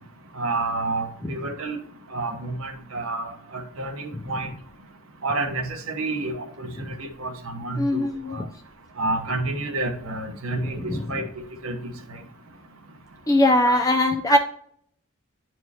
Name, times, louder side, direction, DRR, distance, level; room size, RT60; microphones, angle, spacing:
voice 1, 0.3-1.8 2.1-4.5 5.2-8.4 9.0-10.8 11.1-11.2 11.6-11.7 13.6-13.8 14.3-14.4, right 2 dB, 75° right, 4 dB, 1.0 m, -29 dB
voice 2, 7.8-8.5 10.8-11.0 13.3-14.4, left 1 dB, 15° left, 3 dB, 0.4 m, -21 dB
10.5 x 4.4 x 2.8 m, 0.65 s
head